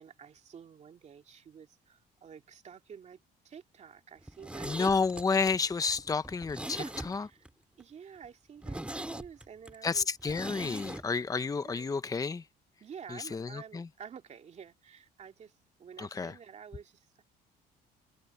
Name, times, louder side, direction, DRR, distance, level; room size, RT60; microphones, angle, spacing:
voice 1, 0.0-5.0 6.8-7.5 7.8-10.5 11.6-11.9 12.8-17.2, right 7 dB, 45° right, 2.4 m, -50 dB
Zipper (clothing), 4.2-7.5 7.8-7.9 8.2-8.3 8.6-11.0 11.3-11.4, right 1 dB, 5° right, 2.9 m, -41 dB
voice 2, 4.6-7.2 9.8-12.4 13.1-13.9 16.0-16.3, left 5 dB, 20° left, 0.9 m, -31 dB
cardioid pair, 110°, 17 cm